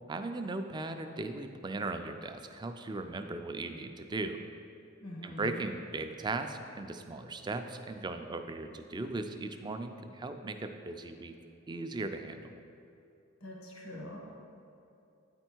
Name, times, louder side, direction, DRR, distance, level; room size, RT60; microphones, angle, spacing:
voice 1, 0.1-4.4 5.2-11.3 11.7-12.5, right 2 dB, 20° right, 7 dB, 0.3 m, -38 dB
voice 2, 5.0-5.7 13.4-14.2, left 1 dB, 80° left, -2 dB, 1.3 m, -43 dB
9.1 x 4.4 x 4.5 m, 2.7 s
head